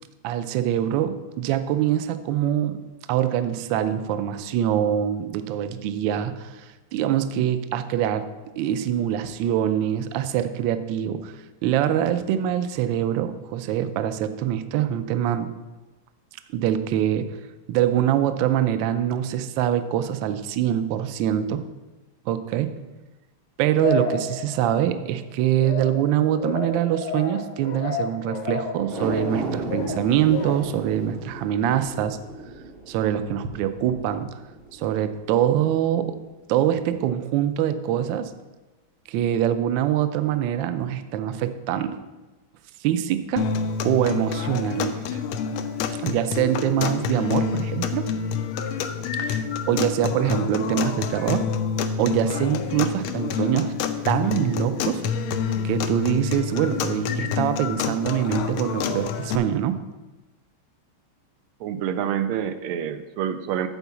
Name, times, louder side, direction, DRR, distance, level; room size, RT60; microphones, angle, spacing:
voice 1, 0.2-2.8 3.1-8.3 8.6-11.3 11.6-15.5 16.5-17.4 17.7-21.6 22.3-22.7 23.6-32.2 32.9-34.4 34.7-36.2 36.5-38.3 39.1-42.0 42.8-43.5 43.8-45.2 46.0-48.1 49.2-51.5 52.0-53.7 54.0-55.0 55.6-59.8, right 10 dB, 75° right, 10 dB, 1.2 m, -24 dB
sound 1, 23.8-24.9 25.6-30.9, left 4 dB, 65° left, 1.4 m, -31 dB
sound 2, 28.8-35.3 35.7-35.8, right 2 dB, 50° right, 0.6 m, -35 dB
sound 3, 43.4-59.4, left 6 dB, 85° left, 1.4 m, -27 dB
voice 2, 61.6-63.7, right 9 dB, 90° right, 9 dB, 1.5 m, -27 dB
8.1 x 4.6 x 7.0 m, 1.1 s
omnidirectional pair, 2.3 m